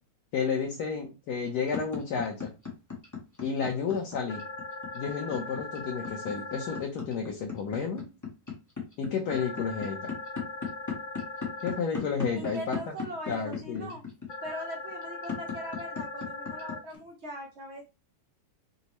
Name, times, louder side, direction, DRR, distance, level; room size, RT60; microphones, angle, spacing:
voice 1, 0.3-2.5 3.4-4.4 4.9-8.1 9.0-10.1 11.6-12.9 13.3-13.9, left 6 dB, 65° left, 1 dB, 1.2 m, -31 dB
sound 1, 1.3-17.0, left 6 dB, 30° left, 0.3 m, -36 dB
sound 2, 4.3-6.8 9.3-11.8 14.3-16.8, left 3 dB, 85° left, 0.6 m, -40 dB
voice 2, 12.3-14.0 14.4-17.8, equal, 80° right, 1 dB, 0.6 m, -40 dB
5.4 x 2.0 x 2.9 m, 0.29 s
omnidirectional pair, 2.0 m